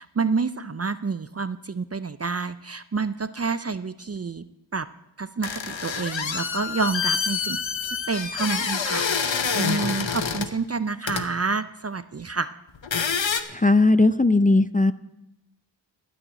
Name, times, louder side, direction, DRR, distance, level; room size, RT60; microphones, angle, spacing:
voice 1, 0.0-4.4 4.7-4.9 5.2-12.6, right 4 dB, 35° right, 13 dB, 0.4 m, -29 dB
sound 1, 5.4-10.5 11.1-11.2 12.8-13.4, left 6 dB, 80° left, 0.9 m, -27 dB
voice 2, 13.5-14.9, left 2 dB, 20° left, 12 dB, 0.5 m, -18 dB
12.0 x 6.4 x 9.0 m, 0.88 s
wide cardioid pair, 55°, 45 cm